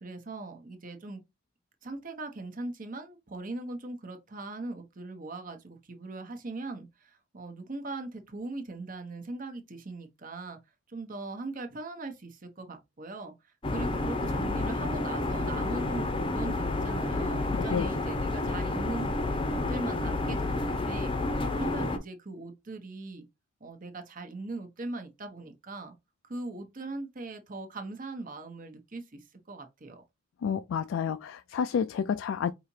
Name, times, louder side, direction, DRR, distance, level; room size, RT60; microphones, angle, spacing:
voice 1, 0.0-1.2 1.8-10.6 10.9-13.3 13.7-19.1 19.5-21.1 21.5-23.2 23.6-26.0 26.2-29.2 29.5-30.0, right 2 dB, 45° right, 0.9 m, -40 dB
sound 1, 13.6-22.0, left 2 dB, 25° left, 0.6 m, -30 dB
voice 2, 17.5-17.9 30.4-32.5, left 7 dB, 80° left, 0.3 m, -30 dB
4.9 x 2.9 x 2.7 m
head